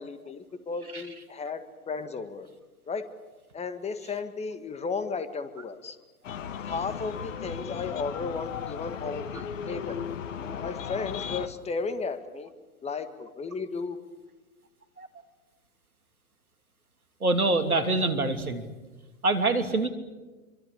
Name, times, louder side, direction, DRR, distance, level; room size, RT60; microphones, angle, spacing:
voice 1, 0.0-2.5 2.9-3.0 3.5-6.0 6.6-10.0 10.6-12.5 12.8-14.0, left 4 dB, 15° left, 10 dB, 1.8 m, -34 dB
sound 1, 6.2-11.5, left 8 dB, 60° left, 1.7 m, -36 dB
voice 2, 17.2-18.7 19.2-19.9, right 2 dB, 90° right, 8 dB, 2.9 m, -25 dB
27.0 x 24.0 x 8.5 m, 1.2 s
figure-of-eight pair, 105°, 42 cm